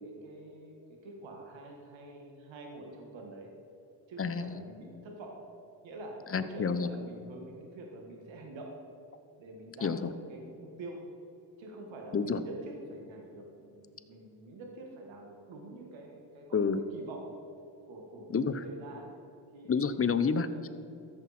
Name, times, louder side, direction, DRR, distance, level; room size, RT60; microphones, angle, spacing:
voice 1, 0.0-3.5 4.1-5.4 5.8-8.7 9.4-11.0 11.6-17.3 17.9-19.1 19.5-20.1 20.5-20.6, right 2 dB, 85° right, 1 dB, 1.7 m, -46 dB
voice 2, 4.2-4.6 6.3-6.9 9.8-10.1 12.1-12.4 16.5-16.8 18.3-18.6 19.7-20.7, left 5 dB, 30° left, 11 dB, 0.7 m, -29 dB
13.5 x 7.5 x 4.3 m, 2.7 s
cardioid pair, 80°, 45 cm